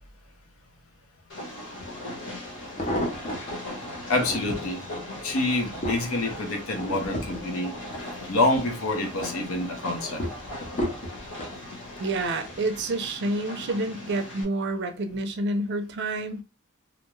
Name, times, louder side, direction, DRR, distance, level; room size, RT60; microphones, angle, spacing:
Train, 1.3-14.4, left 1 dB, 55° left, 1.1 m, -39 dB
sound 1, 1.8-1.9 2.5-3.5 4.0-4.7 5.3-8.7 9.1-9.5 10.2-11.6 12.3-12.7 13.0-13.1, equal, 30° left, 0.6 m, -33 dB
voice 1, 4.1-4.8 5.2-7.8 8.3-10.2, left 2 dB, 70° left, 0.8 m, -27 dB
voice 2, 12.0-16.4, right 2 dB, 50° right, 0.5 m, -28 dB
2.5 x 2.2 x 3.0 m
head